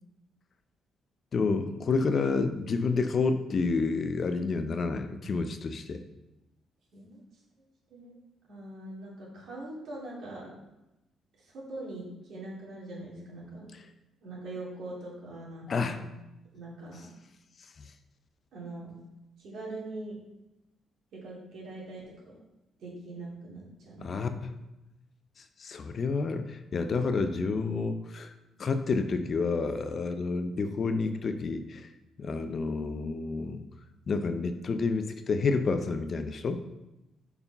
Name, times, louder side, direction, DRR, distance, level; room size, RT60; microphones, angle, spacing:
voice 1, 1.3-6.0 15.7-16.0 24.0-24.6 25.6-28.3 28.6-31.9 32.2-33.6 34.1-36.6, left 4 dB, 50° left, 9 dB, 0.6 m, -29 dB
voice 2, 6.9-7.2 7.9-8.2 8.5-10.5 11.4-13.7 14.2-16.0 16.5-17.1 18.5-19.0 19.4-20.2 21.1-22.3 22.8-24.3, right 2 dB, 70° right, -5 dB, 2.8 m, -42 dB
5.5 x 4.8 x 5.5 m, 0.95 s
cardioid pair, 90°, 0 cm